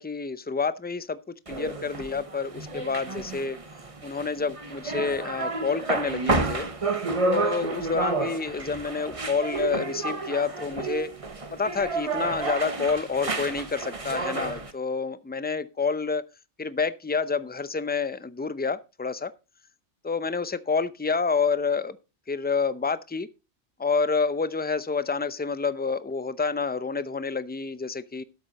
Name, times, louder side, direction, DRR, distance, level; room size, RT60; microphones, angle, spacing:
voice 1, 0.0-3.6 4.0-6.7 7.2-11.1 11.5-16.2 16.6-19.3 20.0-22.0 22.3-23.3 23.8-28.2, left 5 dB, 15° left, 0.4 m, -28 dB
sound 1, 1.5-14.7, right 3 dB, 30° right, 1.2 m, -30 dB
12.5 x 7.9 x 4.1 m
omnidirectional pair, 1.2 m